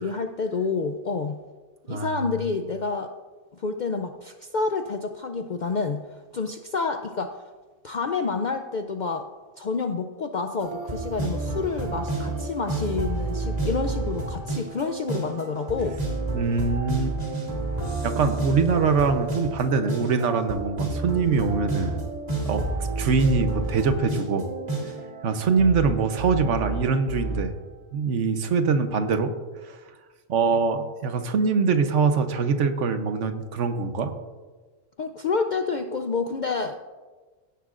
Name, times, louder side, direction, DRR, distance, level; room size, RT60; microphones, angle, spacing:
voice 1, 0.0-1.4 1.9-3.1 3.5-6.0 6.3-7.4 7.8-9.3 9.6-16.0 35.0-36.8, left 4 dB, 60° left, 6 dB, 0.5 m, -28 dB
voice 2, 1.9-2.3 16.3-17.2 18.0-22.0 22.5-22.6 23.0-24.5 25.2-27.5 27.9-29.3 29.7-29.8 30.3-34.1, right 5 dB, 70° right, 8 dB, 1.2 m, -23 dB
sound 1, 10.6-27.4, right 2 dB, 30° right, 2.4 m, -30 dB
16.5 x 10.0 x 2.5 m, 1.3 s
omnidirectional pair, 1.3 m